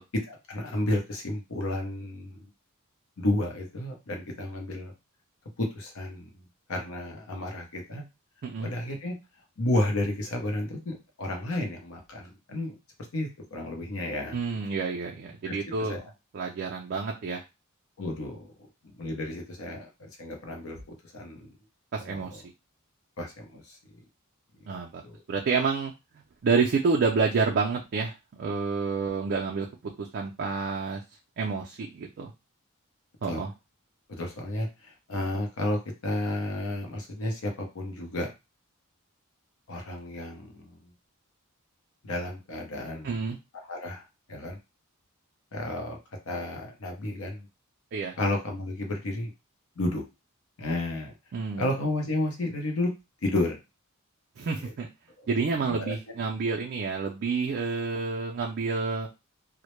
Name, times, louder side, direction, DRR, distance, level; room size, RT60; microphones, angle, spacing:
voice 1, 0.3-2.5 3.2-4.9 5.6-8.0 8.6-9.2 9.6-12.8 13.1-14.8 15.4-16.1 18.0-18.5 18.8-21.6 22.0-22.4 23.2-24.0 24.6-25.2 33.3-33.4 34.1-38.3 39.7-40.9 42.0-43.3 43.6-44.6 45.5-46.0 46.3-47.5 48.2-49.3 49.8-50.0 50.6-51.1 51.6-52.9 53.2-53.6 54.6-54.7 55.2-55.3 55.7-56.2, left 1 dB, 70° left, 2 dB, 0.7 m, -32 dB
voice 2, 14.3-15.9 16.3-17.4 21.9-22.4 24.7-25.0 25.3-25.9 26.4-28.1 28.4-29.7 30.0-31.0 31.4-32.3 33.2-33.5 43.0-43.4 47.9-48.1 51.3-51.7 54.4-54.9 55.3-59.1, right 4 dB, 50° right, 0 dB, 0.3 m, -28 dB
2.1 x 2.1 x 3.0 m, 0.25 s
head